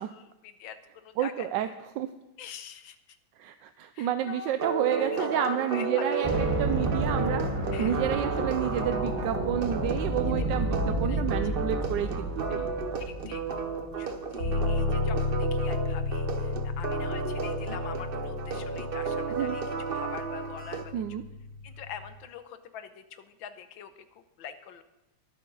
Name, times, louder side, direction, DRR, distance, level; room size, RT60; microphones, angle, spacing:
voice 1, 0.0-1.5 2.4-3.0 3.9-6.0 7.7-7.9 10.4-10.5 11.0-11.2 13.0-13.4 14.0-19.6 19.9-20.9 21.6-24.8, left 8 dB, 75° left, 10 dB, 1.5 m, -43 dB
voice 2, 1.2-1.7 2.0-2.1 3.4-12.7 19.4-19.6 20.9-21.2, right 11 dB, 75° right, 10 dB, 1.1 m, -30 dB
sound 1, 4.6-20.8, right 4 dB, 55° right, 0.6 m, -33 dB
sound 2, 6.2-14.3, right 1 dB, 25° right, 0.8 m, -31 dB
sound 3, 14.4-22.1, left 3 dB, 60° left, 3.4 m, -32 dB
22.0 x 8.5 x 4.0 m, 0.93 s
omnidirectional pair, 2.2 m